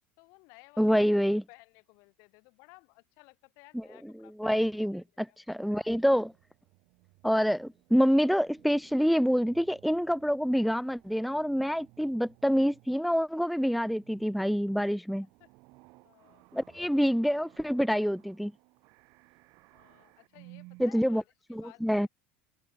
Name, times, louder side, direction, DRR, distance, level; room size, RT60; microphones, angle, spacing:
voice 1, 0.2-1.0 1.5-4.9 5.3-5.4 15.4-15.5 16.0-16.5 19.7-22.1, left 30 dB, 65° left, 5.2 m, -57 dB
voice 2, 0.8-1.4 3.7-3.8 4.4-6.3 7.2-15.3 16.5-18.5 20.8-21.2 21.5-22.1, equal, ahead, 0.3 m, -26 dB
sound 1, 5.7-13.1 13.5-20.9, right 26 dB, 65° right, 7.0 m, -59 dB
hypercardioid pair, 90°, 6 cm